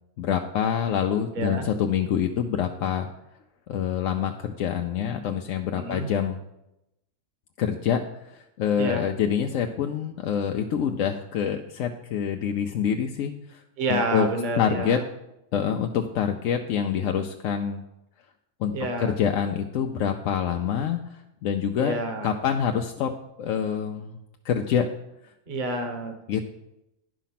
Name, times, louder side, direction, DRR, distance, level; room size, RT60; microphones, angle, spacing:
voice 1, 0.2-3.1 3.7-6.4 7.6-13.6 13.9-14.3 14.6-15.0 15.5-17.8 18.6-18.7 19.0-21.9 22.2-23.1 23.4-24.1 24.4-24.9 26.3-26.4, left 8 dB, 85° left, 4 dB, 1.0 m, -26 dB
voice 2, 1.3-1.7 5.8-6.1 8.8-9.1 13.8-15.0 18.7-19.2 21.8-22.3 25.5-26.1, right 2 dB, 40° right, 5 dB, 1.1 m, -29 dB
10.5 x 5.0 x 5.8 m, 0.89 s
omnidirectional pair, 1.3 m